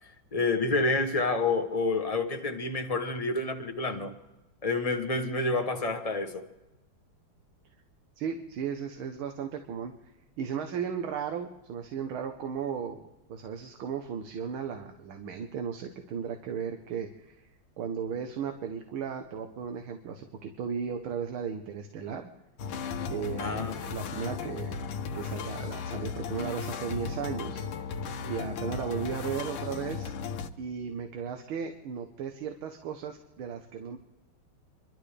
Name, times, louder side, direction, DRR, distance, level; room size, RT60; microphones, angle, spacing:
voice 1, 0.3-4.2 4.6-6.5 23.4-23.8, left 3 dB, 45° left, 0.4 m, -28 dB
voice 2, 8.2-9.9 10.4-17.5 17.8-22.3 23.1-24.8 25.1-27.6 28.3-30.1 30.6-34.0, right 7 dB, 75° right, 1.8 m, -35 dB
sound 1, 22.6-30.5, left 6 dB, 80° left, 1.7 m, -36 dB
27.0 x 12.5 x 3.3 m
omnidirectional pair, 2.3 m